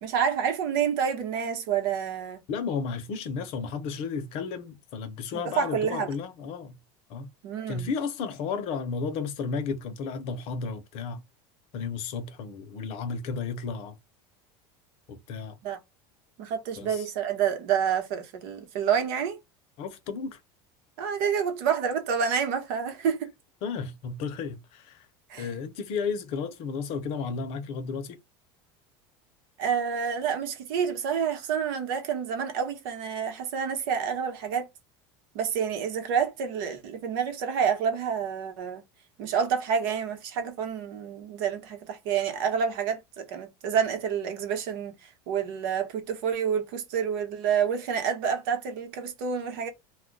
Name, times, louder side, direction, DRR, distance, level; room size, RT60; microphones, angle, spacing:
voice 1, 0.0-2.4 5.3-6.1 7.4-7.9 15.6-15.8 16.4-19.4 21.0-23.3 25.3-25.5 29.6-34.7 35.3-38.8 39.2-44.9 45.3-49.7, right 7 dB, 75° right, 1.0 m, -28 dB
voice 2, 2.5-6.8 7.1-7.3 7.7-11.2 11.7-14.0 15.1-15.6 16.8-17.1 19.8-20.4 23.6-25.1 25.4-28.2, left 5 dB, 60° left, 0.7 m, -33 dB
2.3 x 2.1 x 3.8 m
supercardioid pair, 125°, 12 cm